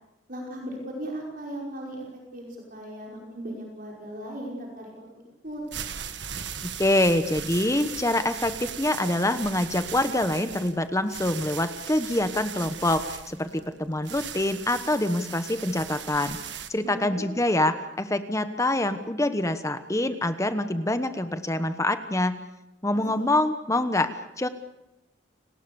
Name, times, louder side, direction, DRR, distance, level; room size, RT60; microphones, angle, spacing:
voice 1, 0.3-5.2 5.4-5.6 16.8-17.3 22.9-23.3, right 1 dB, 45° right, -1 dB, 5.4 m, -38 dB
sound 1, 5.5-16.7, right 8 dB, 60° right, 1.8 m, -38 dB
voice 2, 6.6-16.4 16.7-22.4 22.8-24.5, left 1 dB, 15° left, 10 dB, 1.1 m, -25 dB
30.0 x 19.5 x 7.0 m, 0.91 s
head